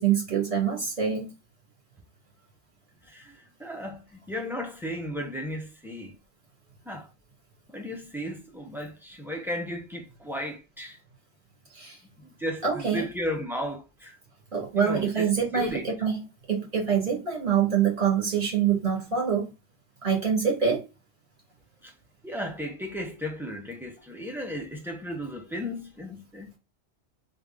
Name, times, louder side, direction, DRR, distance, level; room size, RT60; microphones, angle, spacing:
voice 1, 0.0-1.3 11.7-12.0 12.6-13.1 14.5-19.5 20.0-20.9, right 7 dB, 45° right, 2.1 m, -25 dB
voice 2, 3.1-6.2 6.9-7.1 7.7-11.0 12.2-14.1 14.7-15.9 21.8-21.9 22.2-26.5, equal, ahead, 0.6 m, -35 dB
3.5 x 2.4 x 3.6 m
omnidirectional pair, 1.1 m